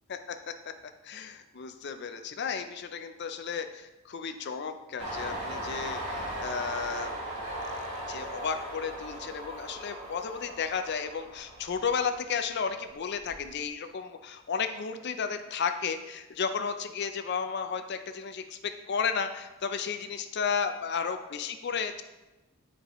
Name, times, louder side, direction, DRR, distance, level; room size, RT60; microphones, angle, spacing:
voice 1, 0.1-0.5 1.0-7.1 7.7-7.8 8.1-22.0, left 6 dB, 50° left, 8 dB, 0.4 m, -33 dB
Train, 5.0-12.4 12.8-13.6, right 1 dB, 75° right, 1.6 m, -38 dB
10.0 x 4.7 x 3.0 m, 1.1 s
head